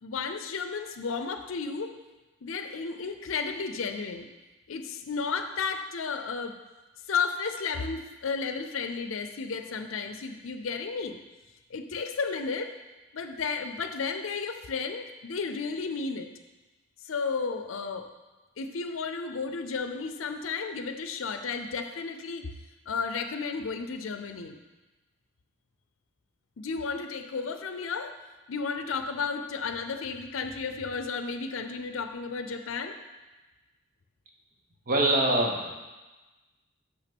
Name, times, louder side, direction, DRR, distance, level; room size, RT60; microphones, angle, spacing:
voice 1, 0.0-1.9 2.4-4.3 4.7-6.5 7.1-11.2 11.7-12.7 13.1-16.3 17.0-18.1 18.6-22.5 22.9-24.6 26.6-28.1 28.5-32.9, left 5 dB, 85° left, 7 dB, 0.6 m, -33 dB
voice 2, 34.9-35.7, right 1 dB, 45° right, 1 dB, 1.2 m, -24 dB
6.0 x 5.9 x 6.0 m, 1.2 s
head